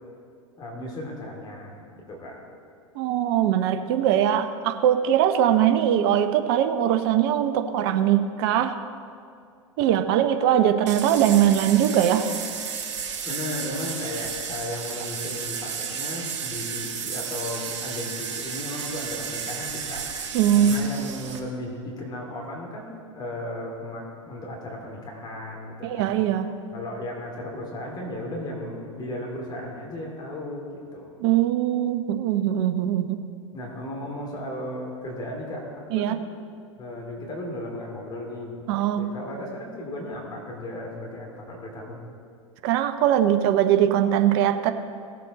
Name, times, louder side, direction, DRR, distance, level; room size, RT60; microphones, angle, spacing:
voice 1, 0.6-2.4 13.2-26.2 26.7-31.2 33.5-36.2 36.8-38.6 38.9-42.0, left 1 dB, 25° left, -2 dB, 2.7 m, -35 dB
voice 2, 3.0-8.8 9.8-12.3 20.3-21.0 25.8-26.5 31.2-33.2 35.9-36.2 38.7-39.0 42.6-44.7, right 10 dB, 50° right, 9 dB, 0.8 m, -21 dB
sound 1, 10.9-21.4, right 6 dB, 65° right, 1.2 m, -33 dB
18.5 x 7.6 x 4.2 m, 2.4 s
figure-of-eight pair, 90°, 17 cm